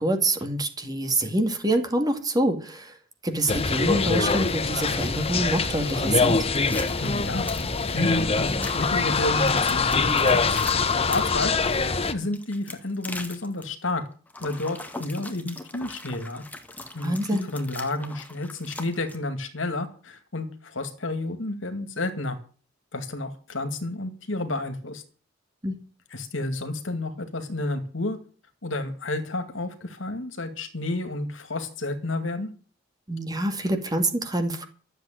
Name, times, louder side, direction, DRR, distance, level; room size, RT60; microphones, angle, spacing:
voice 1, 0.0-2.9 3.2-6.4 17.0-17.5 25.6-25.8 33.1-34.7, right 1 dB, 20° right, 6 dB, 2.3 m, -26 dB
sound 1, 3.5-12.1, left 4 dB, 30° left, 1.1 m, -24 dB
sound 2, 6.3-8.0 8.5-8.7 9.3-11.4 12.3-13.6 14.3-19.2, left 2 dB, 10° left, 1.9 m, -40 dB
voice 2, 6.9-11.8 12.1-14.0 14.4-16.4 16.9-22.4 22.9-25.0 26.1-28.2 28.6-32.5, left 2 dB, 70° left, 8 dB, 2.3 m, -31 dB
13.0 x 8.0 x 9.1 m, 0.40 s
head